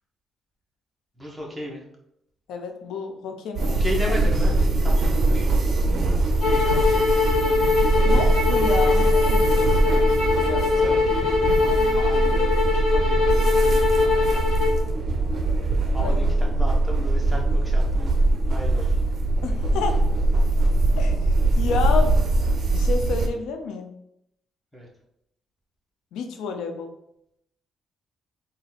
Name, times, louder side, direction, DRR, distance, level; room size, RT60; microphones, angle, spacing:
voice 1, 1.2-1.8 3.6-4.5 4.8-7.9 10.1-14.5 15.9-18.1 18.5-19.0 24.7-24.9, equal, 5° right, -2 dB, 1.3 m, -35 dB
voice 2, 2.5-3.7 8.0-9.7 16.0-16.2 19.4-20.0 21.0-21.2 21.6-22.2 22.7-23.9 26.1-26.9, left 4 dB, 85° left, 5 dB, 0.5 m, -29 dB
sound 1, 3.6-23.3, right 2 dB, 50° right, 0.6 m, -22 dB
sound 2, 6.4-14.8, left 4 dB, 65° left, 1.5 m, -22 dB
3.9 x 2.6 x 4.1 m, 0.77 s
cardioid pair, 90°, 0 cm